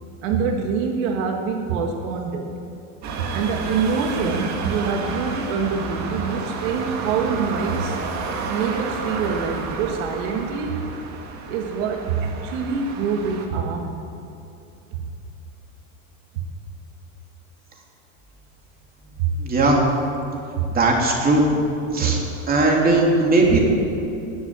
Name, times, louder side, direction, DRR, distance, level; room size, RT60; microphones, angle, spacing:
voice 1, 0.2-2.5 3.3-8.0 8.5-10.8 11.5-13.9 15.0-15.1 16.3-16.5 19.2-19.3 20.5-20.7 22.0-22.2, right 5 dB, 70° right, 3 dB, 1.6 m, -25 dB
sound 1, 3.0-13.5, right 4 dB, 40° right, 2.0 m, -31 dB
voice 2, 19.4-19.8 20.7-21.5 21.9-22.2 22.5-23.7, right 2 dB, 20° right, -1 dB, 3.3 m, -18 dB
19.5 x 7.5 x 8.8 m, 2.7 s
supercardioid pair, 125°, 41 cm